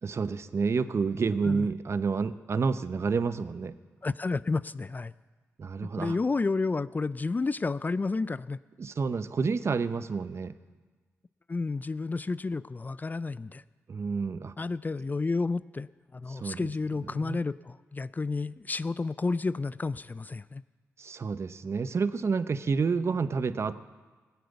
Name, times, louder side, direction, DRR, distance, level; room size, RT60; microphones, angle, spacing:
voice 1, 0.0-3.8 5.6-6.2 8.8-10.5 13.9-14.5 16.3-16.7 17.1-17.4 21.0-23.7, right 5 dB, 50° right, 13 dB, 0.7 m, -29 dB
voice 2, 4.0-5.1 6.0-8.6 11.5-13.6 14.6-20.6, left 3 dB, 30° left, 18 dB, 0.4 m, -31 dB
19.0 x 7.8 x 8.1 m, 1.4 s
supercardioid pair, 50°, 6 cm